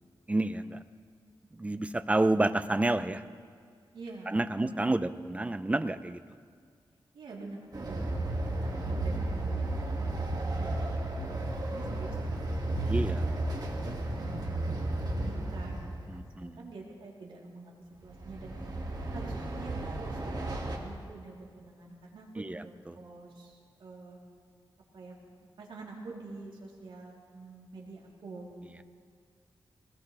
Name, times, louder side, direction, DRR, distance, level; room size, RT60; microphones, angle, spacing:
voice 1, 0.3-0.8 1.5-3.2 4.3-6.2 12.9-13.3 16.1-16.6 22.4-23.0, right 2 dB, 15° right, 12 dB, 0.6 m, -29 dB
voice 2, 3.9-4.3 4.6-5.1 7.1-13.1 13.6-15.9 16.1-17.8 18.0-18.5 19.1-24.2 24.9-25.2 25.6-28.5, right 3 dB, 80° right, -3 dB, 3.6 m, -47 dB
Train, 7.7-16.2 18.0-20.8, right 2 dB, 50° right, 2.2 m, -33 dB
21.5 x 19.5 x 3.4 m, 2.1 s
wide cardioid pair, 100°, 9 cm